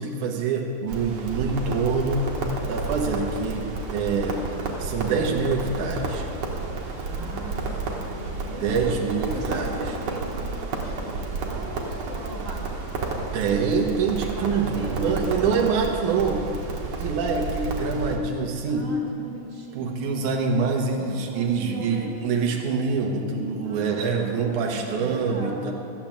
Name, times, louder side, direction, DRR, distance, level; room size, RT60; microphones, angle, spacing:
voice 1, 0.0-2.3 2.6-6.3 8.6-9.7 13.3-16.4 17.0-18.9 19.7-25.7, right 4 dB, 80° right, 0 dB, 2.7 m, -25 dB
Crackle, 0.9-18.2, right 3 dB, 60° right, 2.4 m, -31 dB
voice 2, 7.0-9.0 9.3-12.8 14.2-16.5 18.7-20.6 21.0-22.1 23.6-25.7, right 2 dB, 45° right, -1 dB, 1.9 m, -39 dB
14.0 x 9.1 x 7.4 m, 2.9 s
omnidirectional pair, 3.5 m